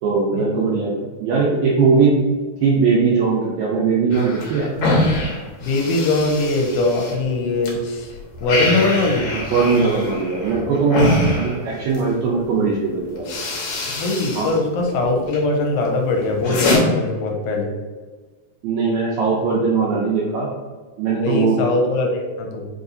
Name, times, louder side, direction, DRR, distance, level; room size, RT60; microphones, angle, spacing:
voice 1, 0.0-2.2 2.6-4.7 9.3-13.4 14.4-14.5 18.6-20.5 21.0-21.6, right 4 dB, 75° right, -4 dB, 1.8 m, -19 dB
sound 1, 4.1-7.7 8.1-12.1 12.8-12.9 13.2-14.6 14.9-15.4 15.9-16.8, left 2 dB, 70° left, 2.0 m, -24 dB
voice 2, 5.6-9.3 13.9-17.7 21.2-22.7, left 2 dB, 85° left, 1 dB, 2.1 m, -21 dB
4.9 x 2.8 x 2.6 m, 1.4 s
omnidirectional pair, 3.6 m